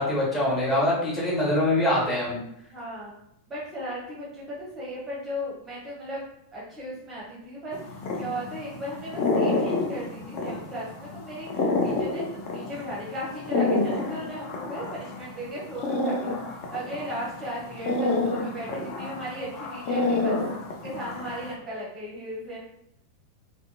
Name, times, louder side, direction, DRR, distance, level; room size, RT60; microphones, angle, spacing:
voice 1, 0.0-2.4, left 1 dB, 15° left, -8 dB, 1.2 m, -24 dB
voice 2, 2.7-3.1 3.5-6.2 6.5-16.4 16.7-20.4 20.7-22.6, equal, 20° right, -6 dB, 0.7 m, -36 dB
Cat Purr, 7.7-21.5, left 3 dB, 40° left, 0.4 m, -29 dB
2.5 x 2.2 x 2.6 m, 0.77 s
figure-of-eight pair, 90°, 0 cm